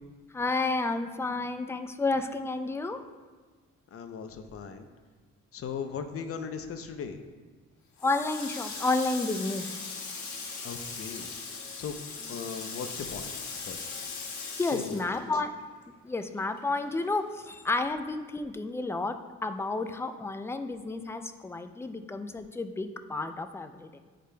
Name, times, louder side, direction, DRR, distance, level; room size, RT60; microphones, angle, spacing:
voice 1, 0.3-3.0 8.0-9.7 12.2-12.3 14.6-15.5 16.0-24.0, left 3 dB, 10° left, 8 dB, 0.4 m, -31 dB
voice 2, 3.9-4.9 5.5-7.2 10.6-11.3 11.8-12.0 12.3-13.3 13.6-13.9 14.7-15.1, left 6 dB, 50° left, 7 dB, 0.7 m, -37 dB
Water tap faucet, 8.0-15.8 16.1-17.5, left 4 dB, 70° left, 1.3 m, -39 dB
9.9 x 5.0 x 2.2 m, 1.4 s
cardioid pair, 90°, 30 cm